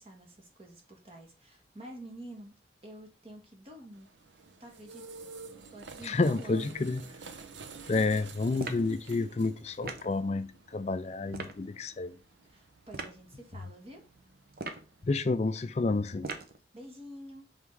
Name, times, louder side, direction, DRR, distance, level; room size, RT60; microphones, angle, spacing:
voice 1, 0.0-2.5 2.8-4.1 4.6-5.0 5.7-6.8 12.4-14.0 16.7-17.5, right 1 dB, 35° right, 1.5 m, -48 dB
sound 1, 3.9-15.4, right 4 dB, 85° right, 0.8 m, -51 dB
voice 2, 6.0-7.0 7.9-12.2 15.0-16.3, left 3 dB, 35° left, 0.4 m, -30 dB
sound 2, 8.6-8.9 9.8-10.1 11.3-11.6 12.9-13.2 14.5-14.9 16.2-16.6, right 3 dB, 55° right, 0.8 m, -39 dB
5.6 x 3.6 x 4.7 m
head